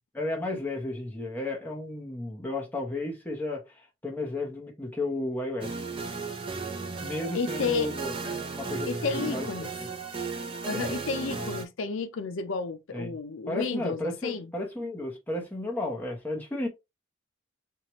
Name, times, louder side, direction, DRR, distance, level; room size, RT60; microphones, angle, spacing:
voice 1, 0.1-5.8 7.0-9.5 10.7-10.9 12.9-13.2 13.5-16.7, left 2 dB, 10° left, 1.0 m, -33 dB
sound 1, 5.6-11.7, right 4 dB, 25° right, 0.7 m, -35 dB
voice 2, 7.3-7.9 8.9-9.7 10.7-14.5, left 5 dB, 70° left, 0.5 m, -32 dB
4.6 x 2.4 x 2.9 m
head